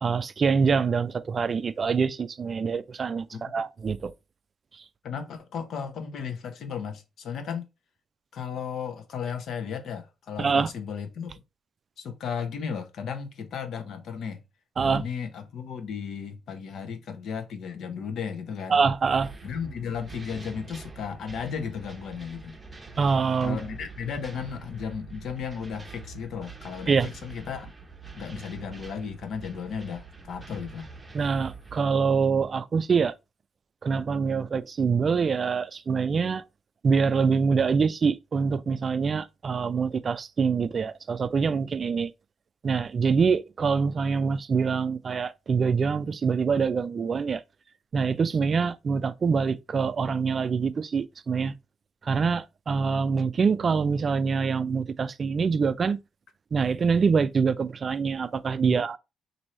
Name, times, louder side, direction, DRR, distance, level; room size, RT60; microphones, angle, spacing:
voice 1, 0.0-4.1 10.4-10.7 14.8-15.0 18.7-19.3 23.0-23.6 26.9-27.1 31.1-33.1 33.8-36.4 36.8-42.1 42.6-47.4 47.9-51.5 52.0-56.0 56.5-59.0, right 5 dB, 40° right, 0.3 m, -25 dB
voice 2, 5.0-7.7 8.3-11.3 12.0-14.4 14.8-18.8 19.4-22.6 23.4-27.7 28.2-30.9 58.6-58.7, left 6 dB, 70° left, 0.8 m, -35 dB
sound 1, 19.2-31.8, right 4 dB, 20° right, 0.7 m, -45 dB
3.1 x 2.6 x 4.1 m
cardioid pair, 90°, 0 cm